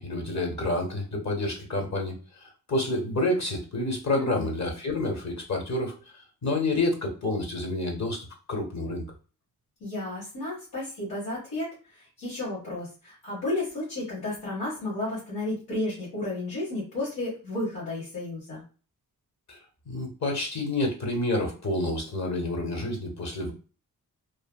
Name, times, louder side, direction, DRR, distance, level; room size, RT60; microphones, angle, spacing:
voice 1, 0.0-6.0 6.4-9.0 19.5-19.6 19.9-23.5, left 2 dB, 45° left, 2 dB, 1.1 m, -29 dB
voice 2, 4.1-4.5 9.8-18.6, left 2 dB, 80° left, -8 dB, 1.5 m, -33 dB
3.2 x 2.5 x 2.2 m, 0.36 s
cardioid pair, 65°, 37 cm